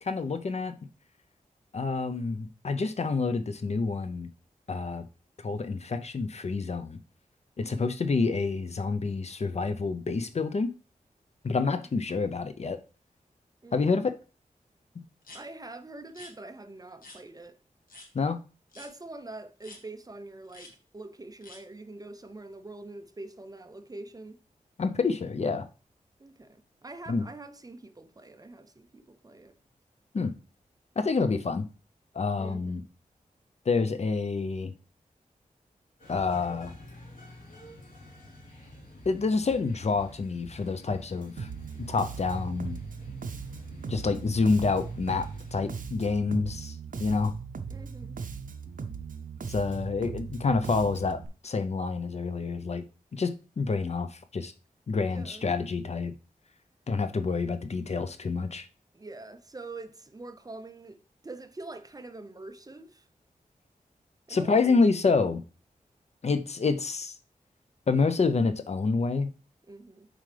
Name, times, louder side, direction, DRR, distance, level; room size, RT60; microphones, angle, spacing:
voice 1, 0.0-0.7 1.7-4.3 4.7-5.0 5.4-7.0 7.6-10.7 11.4-12.8 13.7-14.2 18.1-18.4 24.8-25.7 27.1-27.2 30.1-30.3 31.0-31.7 32.1-32.8 33.7-34.7 36.1-36.7 39.1-41.5 41.9-42.8 43.9-46.7 47.0-47.3 49.5-52.8 53.1-54.5 54.9-56.1 56.9-58.6 64.3-65.4 66.2-67.2 67.9-69.3, left 4 dB, 50° left, 0.6 m, -28 dB
voice 2, 7.6-8.0 11.8-11.9 13.6-13.8 15.3-17.6 18.8-24.4 26.2-29.6 32.4-32.8 47.7-48.2 55.1-55.5 58.9-61.0 61.2-63.1 64.3-64.8 69.7-70.1, right 2 dB, 25° right, 0.6 m, -44 dB
sound 1, 15.2-15.4 16.1-16.3 17.0-17.2 17.9-18.1 18.7-18.9 19.6-19.8 20.5-20.7 21.4-21.6, left 2 dB, 80° left, 1.7 m, -48 dB
sound 2, 36.0-46.2, left 1 dB, 65° left, 3.6 m, -48 dB
Bass guitar, 41.4-51.3, right 5 dB, 70° right, 0.7 m, -39 dB
7.5 x 4.9 x 3.3 m
wide cardioid pair, 100°, 14 cm